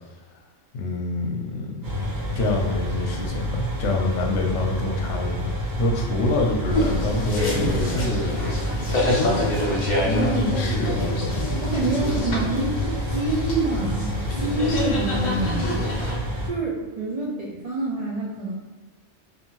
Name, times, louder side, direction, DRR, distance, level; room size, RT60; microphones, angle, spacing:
voice 1, 0.7-5.4 5.8-8.5 9.1-9.3 10.0-11.5 12.1-12.2, left 2 dB, 80° left, 0 dB, 0.9 m, -26 dB
sound 1, 1.8-16.5, equal, 25° right, 0.5 m, -28 dB
sound 2, 6.7-16.1, left 1 dB, 50° left, 0.6 m, -27 dB
voice 2, 11.6-12.8 13.1-15.8 16.4-18.5, right 2 dB, 85° right, -4 dB, 0.3 m, -27 dB
2.7 x 2.5 x 2.9 m, 1.3 s
omnidirectional pair, 1.2 m